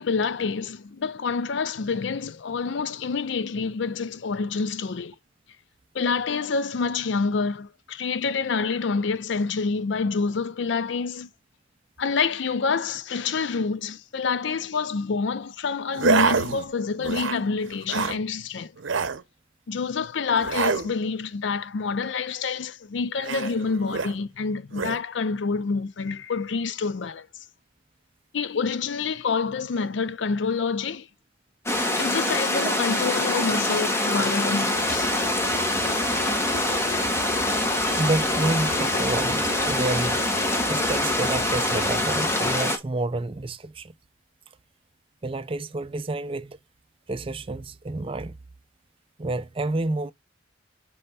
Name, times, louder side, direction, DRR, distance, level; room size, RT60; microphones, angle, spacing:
voice 1, 0.0-5.2 5.9-11.3 12.0-18.7 19.7-27.3 28.3-31.1 32.0-35.1, left 5 dB, 65° left, 0.5 m, -27 dB
sound 1, 15.9-16.7 17.0-17.4 17.7-18.2 18.8-19.2 20.4-20.9 23.2-24.2 24.7-25.0, right 5 dB, 80° right, 0.7 m, -26 dB
sound 2, 31.7-42.8, left 1 dB, 15° left, 1.0 m, -24 dB
sound 3, 34.7-42.0, equal, 45° left, 2.7 m, -38 dB
voice 2, 38.0-43.9 45.2-46.6 47.1-48.3 49.2-50.1, right 2 dB, 30° right, 0.4 m, -29 dB
5.5 x 3.3 x 5.4 m
head